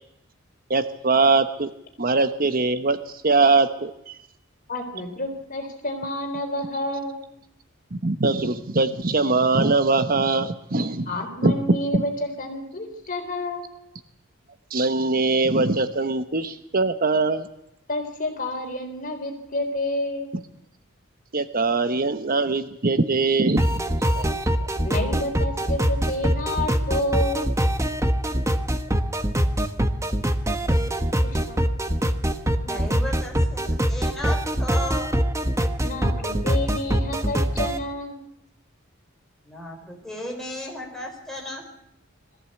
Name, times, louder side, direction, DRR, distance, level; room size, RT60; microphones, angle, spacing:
voice 1, 0.7-1.7 2.0-3.0 3.2-4.2 7.9-11.1 11.4-12.0 14.7-17.5 21.3-23.8 24.2-24.3, right 3 dB, 45° right, 10 dB, 1.0 m, -22 dB
voice 2, 4.7-7.2 11.1-13.7 17.9-20.3 24.8-27.5 31.2-31.6 35.8-38.2, left 1 dB, 45° left, 4 dB, 3.9 m, -29 dB
sound 1, 23.6-37.8, equal, 15° right, 1.2 m, -23 dB
voice 3, 32.6-35.1 39.4-41.6, left 1 dB, ahead, 0 dB, 4.8 m, -34 dB
22.0 x 15.0 x 8.5 m, 0.80 s
head